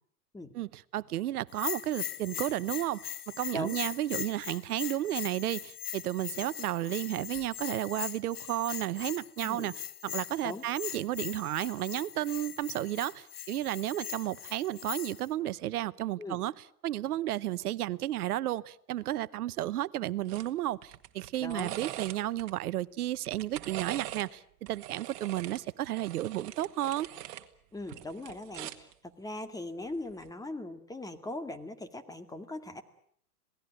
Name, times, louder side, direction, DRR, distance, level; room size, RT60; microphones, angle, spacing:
voice 1, 0.5-9.7 10.0-16.5 16.8-27.1, right 14 dB, 70° right, 1.0 m, -33 dB
Bell, 1.5-15.3, left 10 dB, 75° left, 1.5 m, -40 dB
sound 1, 20.3-20.5 20.8-22.5 23.1-24.3 24.7-27.5 27.8-28.9 30.1-30.3, right 14 dB, 45° right, 1.9 m, -42 dB
voice 2, 21.4-21.8 27.7-32.8, left 1 dB, 10° left, 2.1 m, -40 dB
27.0 x 18.5 x 8.9 m
hypercardioid pair, 110°, 47 cm